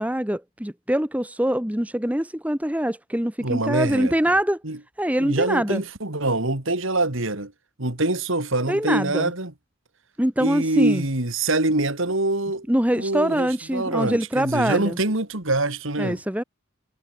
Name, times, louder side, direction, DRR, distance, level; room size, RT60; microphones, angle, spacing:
voice 1, 0.0-4.6 5.0-5.8 8.7-9.3 10.2-11.0 12.7-15.0 16.0-16.4, equal, 5° right, 1.1 m, -24 dB
voice 2, 3.4-4.3 4.6-4.8 5.2-7.5 7.8-9.5 10.4-12.7 12.9-16.2, right 2 dB, 65° right, 2.9 m, -24 dB
head